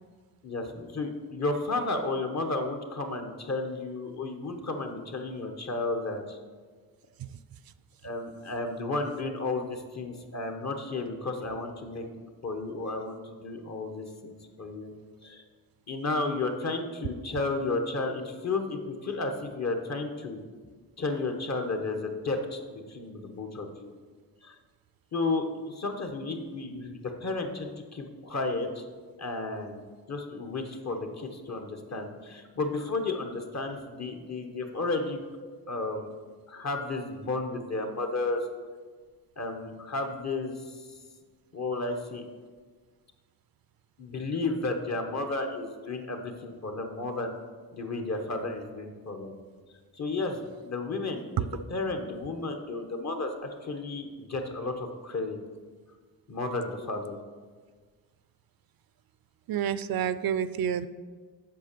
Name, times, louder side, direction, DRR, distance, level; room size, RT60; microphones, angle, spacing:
voice 1, 0.4-6.4 8.0-12.1 12.4-14.9 15.2-15.4 15.9-20.4 21.0-23.9 24.4-24.6 25.1-28.8 29.2-29.8 30.1-36.1 36.5-38.4 39.4-40.9 41.5-42.2 44.0-47.3 47.7-49.3 49.9-55.4 56.3-57.2, left 3 dB, 45° left, 4 dB, 1.2 m, -33 dB
voice 2, 59.5-60.9, right 8 dB, 75° right, 14 dB, 0.5 m, -29 dB
8.4 x 6.1 x 6.8 m, 1.5 s
wide cardioid pair, 110°, 36 cm